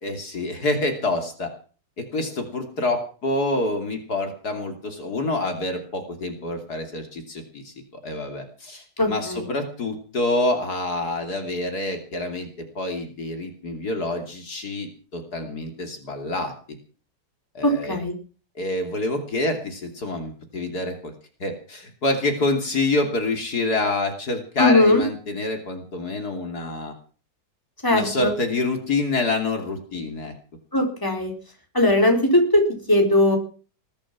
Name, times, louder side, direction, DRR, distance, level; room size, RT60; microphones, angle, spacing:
voice 1, 0.0-1.5 2.0-7.7 8.0-8.8 9.1-12.5 12.8-16.5 17.6-18.0 18.6-21.1 21.4-26.9 27.9-30.3, left 2 dB, 65° left, 4 dB, 3.4 m, -27 dB
voice 2, 9.0-9.5 17.6-18.1 24.6-25.0 27.8-28.3 30.7-31.3 31.7-33.4, left 1 dB, 10° left, 2 dB, 4.3 m, -19 dB
20.5 x 11.5 x 6.0 m, 0.39 s
omnidirectional pair, 1.8 m